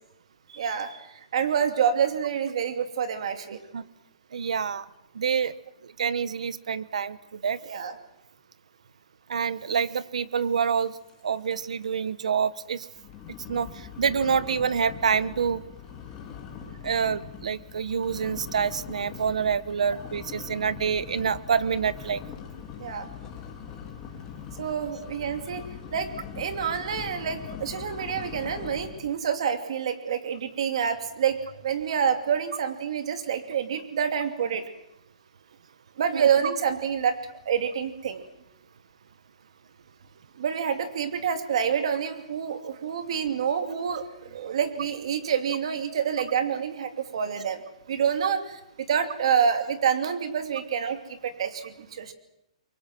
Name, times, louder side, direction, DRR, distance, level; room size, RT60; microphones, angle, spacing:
voice 1, 0.5-3.6 7.6-7.9 19.9-20.0 22.8-23.1 24.6-25.6 25.9-26.1 26.4-31.4 31.6-34.6 36.0-37.2 37.5-38.2 40.4-47.6 47.9-48.4 48.8-52.1, right 7 dB, 55° right, 7 dB, 2.7 m, -27 dB
voice 2, 4.3-4.9 5.1-5.5 5.8-7.6 9.3-11.0 11.2-12.9 13.5-15.6 16.6-22.2 36.1-36.2, right 6 dB, 90° right, 16 dB, 1.1 m, -27 dB
sound 1, 10.8-11.2 11.4-11.8 12.3-12.4 12.9-29.1, left 8 dB, 20° left, 2.8 m, -42 dB
29.0 x 23.5 x 6.1 m, 0.83 s
hypercardioid pair, 170°, 4 cm